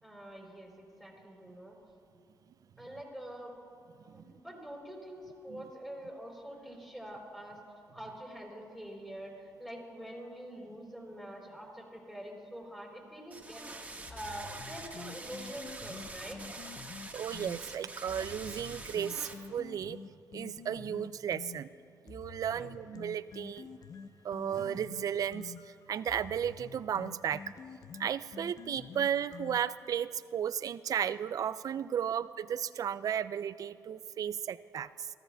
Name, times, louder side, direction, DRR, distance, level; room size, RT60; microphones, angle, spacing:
voice 1, 0.0-1.8 2.8-3.5 4.1-7.6 7.9-16.4 22.5-22.7, right 1 dB, 5° left, -2 dB, 3.5 m, -45 dB
sound 1, 13.3-19.3, right 2 dB, 20° right, 1.4 m, -45 dB
sound 2, 14.1-17.6 18.1-21.6 22.1-29.9, left 6 dB, 65° left, 0.6 m, -48 dB
voice 2, 17.1-20.0 20.3-21.7 22.1-23.7 24.2-27.5 28.0-35.1, right 9 dB, 60° right, 16 dB, 0.3 m, -34 dB
18.5 x 13.5 x 2.3 m, 2.4 s
cardioid pair, 70°, 7 cm